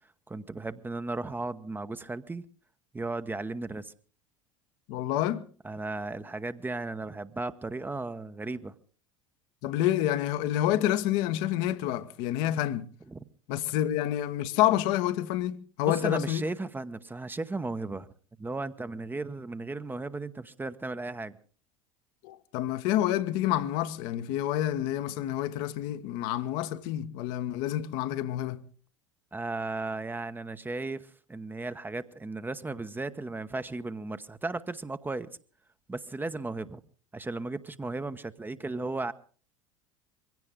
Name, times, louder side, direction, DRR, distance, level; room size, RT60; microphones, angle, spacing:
voice 1, 0.3-2.4 2.9-3.9 5.6-8.7 13.1-13.2 15.8-18.1 18.4-21.3 29.3-35.3 35.9-36.8 37.1-39.1, right 3 dB, 10° right, 1.0 m, -35 dB
voice 2, 4.9-5.4 9.6-12.9 13.5-16.4 22.2-28.6, left 13 dB, 55° left, 1.2 m, -28 dB
23.0 x 16.5 x 3.7 m
figure-of-eight pair, 70°, 16 cm